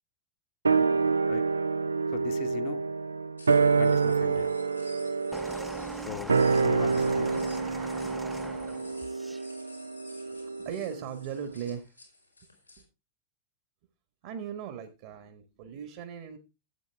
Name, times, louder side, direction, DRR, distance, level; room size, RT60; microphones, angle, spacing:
sound 1, 0.6-11.3 11.5-11.6, right 4 dB, 75° right, 0.4 m, -27 dB
voice 1, 2.1-2.8 3.8-4.5 6.1-7.5, left 11 dB, 50° left, 1.1 m, -39 dB
sound 2, 3.4-12.8, left 2 dB, 85° left, 4.1 m, -53 dB
sound 3, 5.3-9.4 10.3-10.5, right 1 dB, 5° right, 0.7 m, -42 dB
voice 2, 10.3-12.0 14.2-16.4, right 8 dB, 50° right, 1.4 m, -38 dB
12.5 x 8.2 x 3.4 m
figure-of-eight pair, 90°, 0 cm